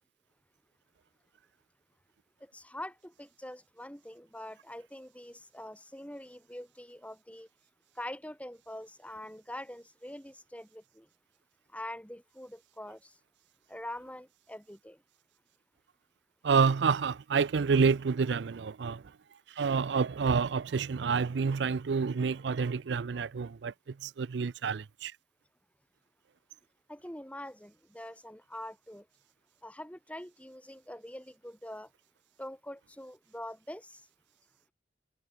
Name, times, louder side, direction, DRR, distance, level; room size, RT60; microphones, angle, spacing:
voice 1, 2.4-7.5 8.0-11.1 11.7-13.2 13.7-15.0 26.9-29.1 29.6-31.9 32.4-34.1, left 1 dB, 5° left, 5.4 m, -44 dB
voice 2, 16.4-19.0 19.6-23.7 24.0-25.1, right 5 dB, 70° right, 0.4 m, -28 dB
head